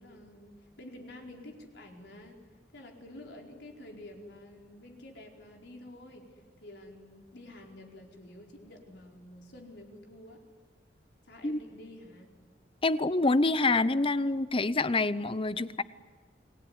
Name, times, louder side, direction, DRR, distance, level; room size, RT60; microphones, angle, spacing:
voice 1, 0.0-2.4 2.7-10.4 11.2-12.3, left 1 dB, 75° left, 1 dB, 4.6 m, -49 dB
voice 2, 12.8-15.8, left 2 dB, 30° left, 16 dB, 0.8 m, -26 dB
29.5 x 20.0 x 9.8 m, 1.4 s
head